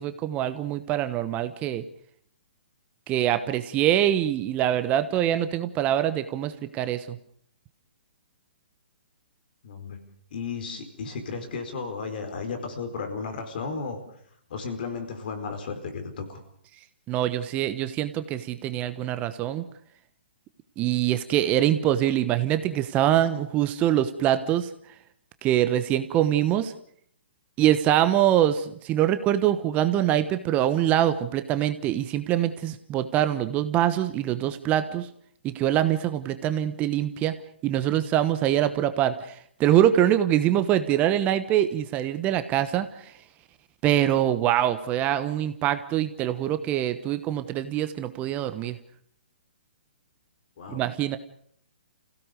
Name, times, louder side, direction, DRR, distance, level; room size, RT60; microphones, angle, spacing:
voice 1, 0.0-1.8 3.1-7.2 17.1-19.6 20.8-24.7 25.4-26.7 27.6-35.1 35.4-37.3 37.6-43.1 43.8-48.8 50.7-51.2, right 11 dB, 25° right, 11 dB, 1.1 m, -24 dB
voice 2, 9.6-10.0 10.3-14.0 14.5-16.4 50.6-50.8, left 4 dB, 55° left, 6 dB, 4.4 m, -34 dB
27.0 x 16.5 x 6.7 m, 0.66 s
figure-of-eight pair, 130°, 6 cm